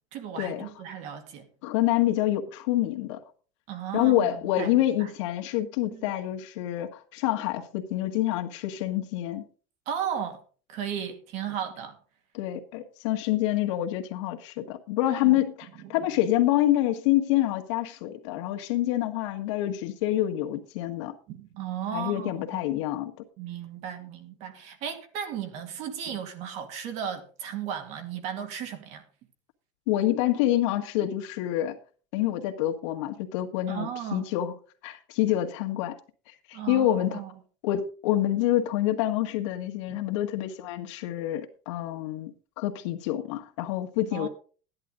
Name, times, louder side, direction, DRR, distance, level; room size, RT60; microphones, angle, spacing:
voice 1, 0.1-1.5 3.7-4.7 5.0-5.1 5.9-6.1 9.9-10.4 10.7-12.0 15.2-15.4 15.8-16.1 21.3-22.6 23.4-29.0 33.7-34.3 36.5-37.3 39.9-40.0 44.1-44.3, right 9 dB, 45° right, 2.3 m, -35 dB
voice 2, 1.6-3.2 3.9-9.4 12.3-21.1 21.9-23.1 29.9-31.8 32.1-34.5 34.8-35.9 36.5-37.2 37.6-44.3, left 13 dB, 75° left, 1.7 m, -27 dB
14.0 x 10.5 x 3.9 m
cardioid pair, 170°, 15 cm